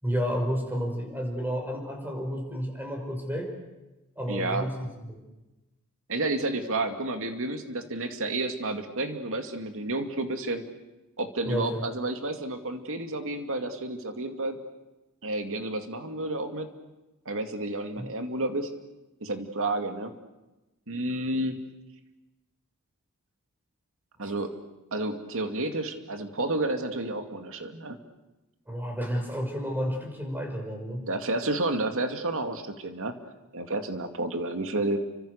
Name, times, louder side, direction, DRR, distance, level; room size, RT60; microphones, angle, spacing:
voice 1, 0.0-3.5 4.2-5.2 11.5-11.8 18.0-18.1 24.2-24.3 28.7-31.1, equal, 10° right, 2 dB, 6.1 m, -31 dB
voice 2, 4.3-4.7 6.1-10.6 11.2-14.6 15.2-16.7 17.3-18.7 19.2-20.1 20.9-21.5 24.2-24.5 24.9-28.0 31.1-33.1 33.5-35.0, right 2 dB, 65° right, 6 dB, 2.5 m, -30 dB
30.0 x 25.0 x 6.7 m, 1.0 s
head